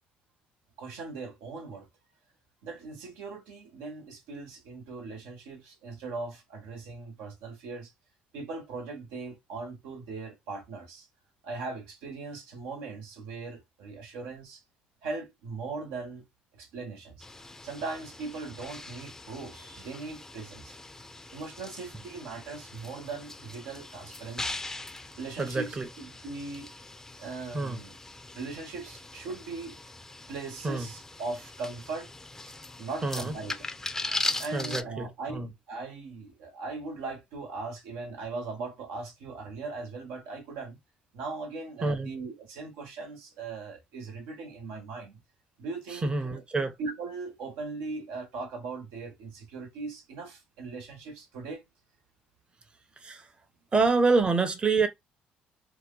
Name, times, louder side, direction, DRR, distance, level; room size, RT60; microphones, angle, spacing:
voice 1, 0.8-1.9 2.6-7.9 8.3-11.1 11.4-14.6 15.0-16.2 16.5-17.3 17.6-20.8 21.3-24.5 25.2-26.7 27.2-27.9 28.3-29.8 30.3-32.1 32.4-32.5 32.8-33.6 34.4-40.8 41.1-45.2 45.6-46.4 46.8-51.6, right 3 dB, 85° right, 1.1 m, -39 dB
sound 1, 17.2-34.8, left 2 dB, 10° left, 0.5 m, -40 dB
voice 2, 25.4-25.9 27.5-27.8 30.6-30.9 33.0-33.3 34.5-35.5 41.8-42.1 45.9-46.8 53.0-53.3 53.7-54.9, right 3 dB, 25° right, 0.7 m, -27 dB
2.8 x 2.2 x 3.7 m
supercardioid pair, 85°, 4 cm